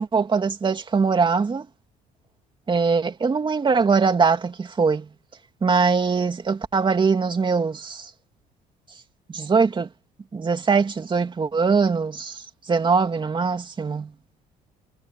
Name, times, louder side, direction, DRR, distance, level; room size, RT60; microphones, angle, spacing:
voice 1, 0.0-1.7 2.7-5.1 5.6-8.1 9.3-9.9 10.3-14.1, right 5 dB, 30° right, 2.8 m, -22 dB
cardioid pair, 110°, 17 cm